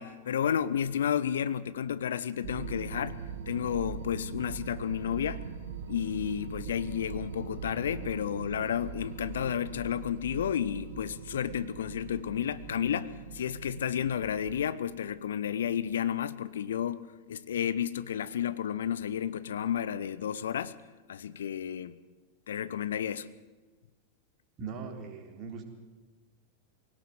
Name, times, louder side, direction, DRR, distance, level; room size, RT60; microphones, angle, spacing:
voice 1, 0.0-3.2 3.5-5.4 5.9-20.8 21.1-22.0 22.5-23.3, left 9 dB, 65° left, 0.8 m, -32 dB
sound 1, 2.4-14.7, right 7 dB, 60° right, 1.9 m, -42 dB
voice 2, 24.6-25.7, right 5 dB, 35° right, 3.7 m, -40 dB
24.5 x 17.5 x 7.9 m
figure-of-eight pair, 90°, 0 cm